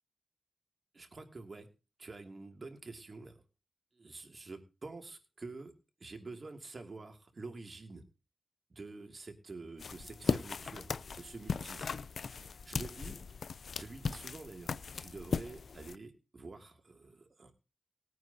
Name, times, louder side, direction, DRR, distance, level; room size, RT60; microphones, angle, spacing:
voice 1, 0.9-1.7 2.0-3.4 3.9-5.7 6.0-8.0 8.7-10.9 11.2-13.2 13.7-14.7 15.0-17.5, right 3 dB, 50° right, 4 dB, 2.5 m, -48 dB
sound 1, 9.8-16.0, left 5 dB, 75° left, 0.5 m, -38 dB
20.0 x 9.4 x 2.8 m, 0.30 s
cardioid pair, 55°, 0 cm